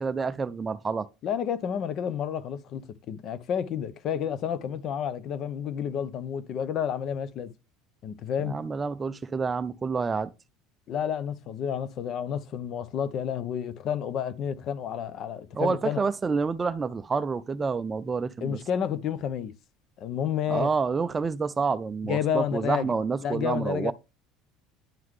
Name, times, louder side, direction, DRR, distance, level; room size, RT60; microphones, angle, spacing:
voice 1, 0.0-1.1 8.4-10.3 15.5-18.6 20.5-23.9, right 5 dB, 20° right, 0.4 m, -28 dB
voice 2, 1.2-2.8 3.1-7.5 8.0-8.6 10.9-16.0 18.4-19.5 20.0-20.7 22.0-22.9 23.2-23.9, left 8 dB, 45° left, 0.7 m, -30 dB
10.5 x 3.8 x 3.2 m
cardioid pair, 130°, 0 cm